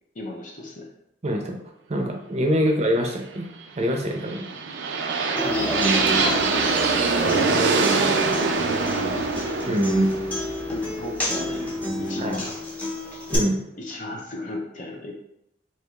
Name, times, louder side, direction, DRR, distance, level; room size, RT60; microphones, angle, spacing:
voice 1, 0.1-0.9 2.6-2.7 5.4-7.0 8.6-9.3 10.7-12.6 13.8-15.1, left 2 dB, 45° left, -1 dB, 0.6 m, -35 dB
voice 2, 1.2-1.6 1.9-3.5 3.8-4.5 9.7-10.1 12.2-12.4 13.3-13.6, equal, 35° right, 2 dB, 0.6 m, -24 dB
sound 1, 4.1-12.0, right 4 dB, 85° right, 0.4 m, -24 dB
Human voice / Acoustic guitar, 5.4-13.4, left 1 dB, 10° left, 0.7 m, -29 dB
Piano, 5.5-12.5, left 3 dB, 90° left, 0.5 m, -42 dB
4.6 x 2.9 x 2.4 m, 0.80 s
head